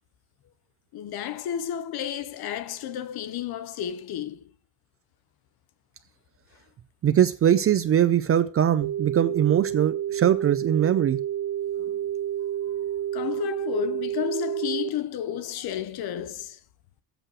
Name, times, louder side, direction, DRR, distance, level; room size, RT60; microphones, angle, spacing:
voice 1, 0.9-4.5 11.8-12.0 13.1-16.6, left 10 dB, 55° left, 0.8 m, -32 dB
voice 2, 7.0-11.2, right 10 dB, 35° right, 0.4 m, -21 dB
sound 1, 8.8-14.9, right 11 dB, 60° right, 1.0 m, -29 dB
7.9 x 6.4 x 6.2 m
cardioid pair, 170°, 45 cm